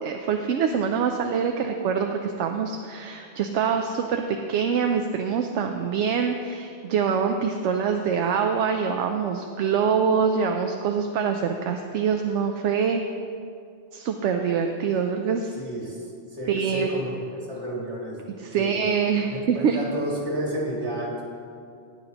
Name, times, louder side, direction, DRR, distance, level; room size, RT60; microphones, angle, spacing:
voice 1, 0.0-13.0 13.9-15.5 16.5-16.9 18.4-19.8, right 6 dB, 80° right, 4 dB, 0.9 m, -25 dB
voice 2, 15.5-18.2 18.5-18.7 19.3-21.2, right 1 dB, 65° right, -4 dB, 2.4 m, -31 dB
13.0 x 9.8 x 2.9 m, 2.4 s
omnidirectional pair, 1.2 m